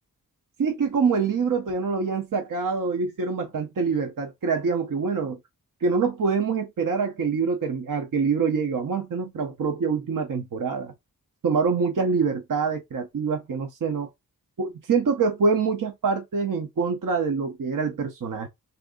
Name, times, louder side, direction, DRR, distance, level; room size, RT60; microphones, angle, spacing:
voice 1, 0.6-5.4 5.8-10.9 11.4-14.1 14.6-18.5, right 5 dB, 60° right, 0.7 m, -25 dB
2.7 x 2.6 x 3.6 m
wide cardioid pair, 70°, 37 cm